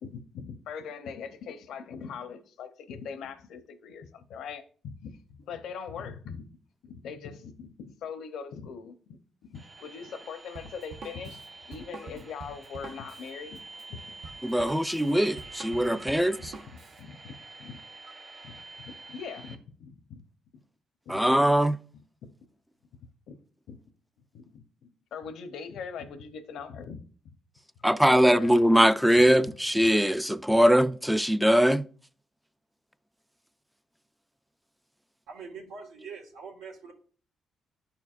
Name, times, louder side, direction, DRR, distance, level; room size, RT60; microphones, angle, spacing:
voice 1, 0.0-6.4 6.8-9.2 9.5-11.4 11.7-13.6 13.9-14.0 15.8-15.9 17.0-17.8 18.4-20.2 21.1-21.2 22.2-22.3 23.3-23.4 23.7-23.8 24.3-24.6 25.1-27.0 28.1-28.6, left 6 dB, 80° left, 0.7 m, -41 dB
sound 1, 9.5-19.6, right 3 dB, 45° right, 1.5 m, -47 dB
Drum kit, 10.6-17.0, right 4 dB, 65° right, 0.7 m, -46 dB
voice 2, 14.4-16.5 21.1-21.8 27.8-31.8, equal, 5° right, 0.3 m, -22 dB
voice 3, 35.3-36.9, right 5 dB, 85° right, 1.5 m, -44 dB
10.5 x 4.5 x 2.4 m
cardioid pair, 90°, 0 cm